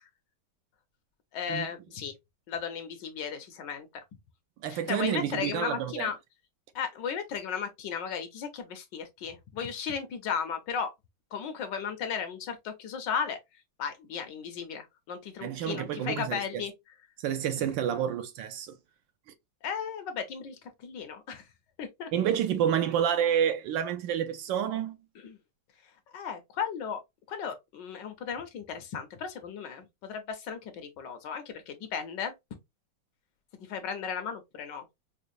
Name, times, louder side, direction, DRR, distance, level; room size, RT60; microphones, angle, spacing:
voice 1, 1.3-2.1 2.5-3.9 4.7-6.2 6.7-10.9 11.3-13.4 13.8-16.7 17.6-17.7 19.6-20.6 20.8-21.5 21.8-22.1 25.2-25.4 26.1-27.0 27.3-32.3 33.7-34.8, left 7 dB, 70° left, 1.2 m, -35 dB
voice 2, 4.6-6.1 15.4-16.6 17.2-18.7 22.1-25.0, right 9 dB, 75° right, 1.2 m, -29 dB
5.0 x 2.1 x 2.5 m
omnidirectional pair, 2.2 m